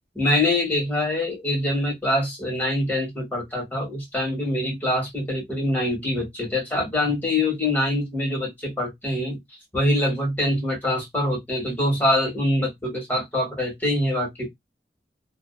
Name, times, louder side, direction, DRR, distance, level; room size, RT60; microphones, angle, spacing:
voice 1, 0.1-9.4 9.7-14.5, left 1 dB, 10° left, 1.2 m, -24 dB
2.5 x 2.2 x 2.2 m
head